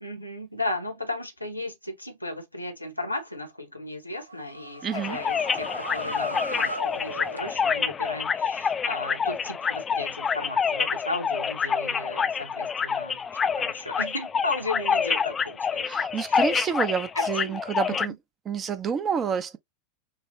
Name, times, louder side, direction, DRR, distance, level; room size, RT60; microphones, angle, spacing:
voice 1, 0.0-15.9 16.3-16.4 17.2-17.6 17.9-18.0, left 2 dB, 85° left, 1.1 m, -35 dB
sound 1, 4.1-7.9, right 1 dB, 85° right, 0.7 m, -37 dB
voice 2, 4.8-5.2 15.8-18.1 18.5-19.6, right 7 dB, 25° right, 0.6 m, -29 dB
sound 2, 4.9-18.1, left 6 dB, 20° left, 0.3 m, -27 dB
6.2 x 2.1 x 2.7 m
figure-of-eight pair, 90°, 0 cm